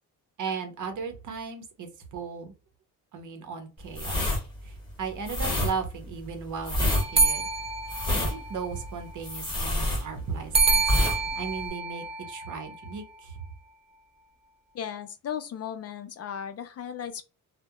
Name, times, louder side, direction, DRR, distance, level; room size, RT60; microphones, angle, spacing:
voice 1, 0.4-2.5 3.1-4.2 4.6-7.5 8.1-10.8 11.4-13.4, right 5 dB, 65° right, 0.7 m, -36 dB
sound 1, 3.9-10.5 10.8-11.2 11.5-11.7, left 1 dB, 15° left, 1.2 m, -27 dB
sound 2, 6.9-8.9 10.5-12.9, right 4 dB, 20° right, 0.3 m, -27 dB
voice 2, 14.7-17.2, left 8 dB, 50° left, 0.4 m, -36 dB
2.3 x 2.1 x 2.7 m
wide cardioid pair, 135°, 33 cm